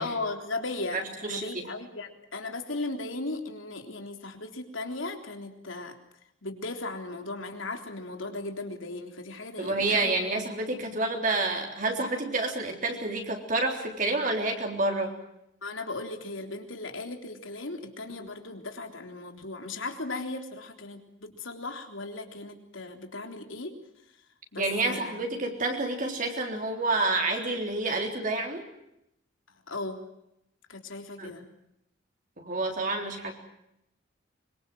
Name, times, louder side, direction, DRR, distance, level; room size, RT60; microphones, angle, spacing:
voice 1, 0.0-6.0 6.4-10.2 10.7-11.0 15.6-24.2 24.5-25.2 29.5-30.1 30.7-31.5, left 2 dB, 80° left, 5 dB, 3.6 m, -37 dB
voice 2, 0.9-1.6 9.6-15.2 24.6-28.7 31.2-31.3 32.4-33.3, right 2 dB, 40° right, 2 dB, 3.6 m, -29 dB
25.0 x 23.5 x 7.7 m, 0.80 s
head